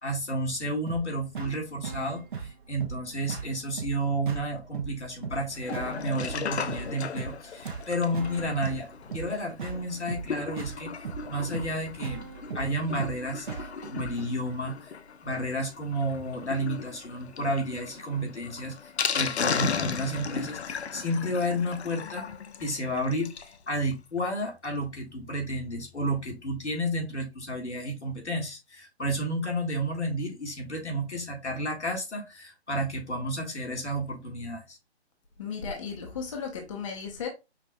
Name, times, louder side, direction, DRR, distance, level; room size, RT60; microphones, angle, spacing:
voice 1, 0.0-8.9 9.1-11.0 11.3-12.2 12.5-13.5 13.9-14.9 15.2-18.8 19.1-22.3 22.6-23.3 23.7-34.8, equal, 90° left, 1.5 m, -31 dB
sound 1, 0.9-14.3, right 6 dB, 50° right, 0.9 m, -39 dB
Sink (filling or washing), 5.5-23.6 23.9-24.0 24.2-24.3 24.6-24.7, left 6 dB, 75° left, 0.6 m, -36 dB
voice 2, 35.4-37.3, left 6 dB, 30° left, 0.6 m, -35 dB
5.5 x 2.4 x 2.2 m
figure-of-eight pair, 145°, 33 cm